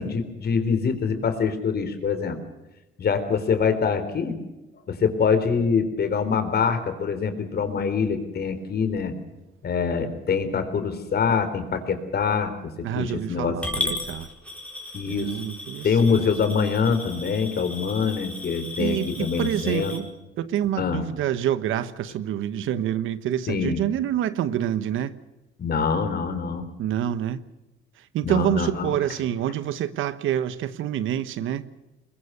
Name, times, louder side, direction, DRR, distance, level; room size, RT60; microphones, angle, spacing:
voice 1, 0.0-2.4 3.0-4.4 4.9-9.1 9.6-13.9 14.9-15.3 15.8-19.9 20.8-21.0 23.5-23.8 25.6-26.7 28.2-28.9, left 5 dB, 55° left, 3.8 m, -24 dB
voice 2, 12.8-13.7 14.0-14.3 15.1-16.3 18.8-20.1 20.4-25.1 26.8-27.4 28.0-31.7, right 10 dB, 85° right, 1.2 m, -27 dB
Coin (dropping) / Glass, 13.6-20.0, left 1 dB, 5° left, 4.7 m, -35 dB
22.0 x 22.0 x 6.7 m
cardioid pair, 90°, 20 cm